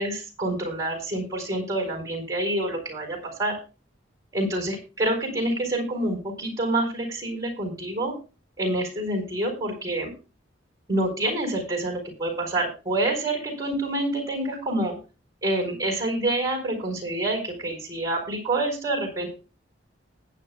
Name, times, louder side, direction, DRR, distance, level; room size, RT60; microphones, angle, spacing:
voice 1, 0.0-3.6 4.3-8.1 8.6-10.1 10.9-14.9 15.4-19.3, right 1 dB, 15° right, 2 dB, 4.2 m, -27 dB
20.0 x 9.0 x 2.2 m, 0.31 s
head